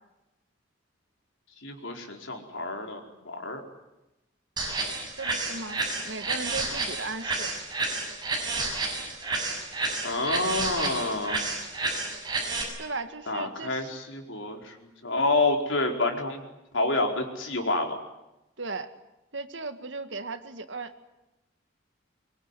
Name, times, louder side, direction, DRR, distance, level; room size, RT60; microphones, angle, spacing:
voice 1, 1.6-3.0 3.2-3.6 10.0-11.5 13.3-16.4 16.7-18.0, left 2 dB, 90° left, 3 dB, 4.7 m, -28 dB
sound 1, 4.6-12.6, right 3 dB, 25° right, 7.7 m, -30 dB
voice 2, 5.1-7.5 12.8-13.9 18.6-18.9 19.3-21.0, right 3 dB, 75° right, 9 dB, 2.0 m, -36 dB
24.0 x 24.0 x 10.0 m, 0.95 s
head